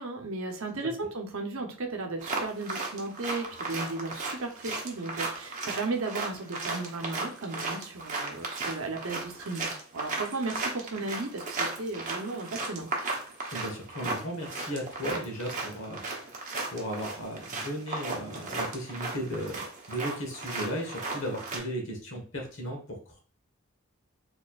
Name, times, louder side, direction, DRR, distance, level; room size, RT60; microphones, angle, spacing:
voice 1, 0.0-12.9, right 3 dB, 75° right, 3 dB, 0.7 m, -35 dB
sound 1, 2.2-21.6, right 3 dB, 35° right, 0.8 m, -35 dB
voice 2, 13.5-16.4 16.7-23.2, equal, 60° left, 2 dB, 1.2 m, -36 dB
4.2 x 3.1 x 2.3 m, 0.42 s
head